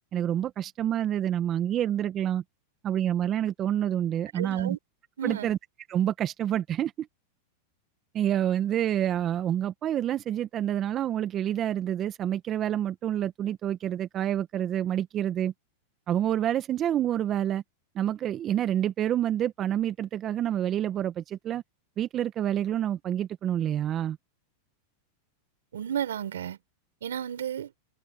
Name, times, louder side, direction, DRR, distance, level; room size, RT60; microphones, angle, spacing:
voice 1, 0.1-2.4 2.8-4.8 5.2-5.6 5.9-7.1 8.1-15.5 16.1-17.6 17.9-21.6 22.0-24.2, right 11 dB, 35° right, 1.2 m, -28 dB
voice 2, 4.3-4.8 5.2-5.5 25.7-26.6 27.0-27.7, right 9 dB, 85° right, 4.7 m, -32 dB
hypercardioid pair, 110°, 0 cm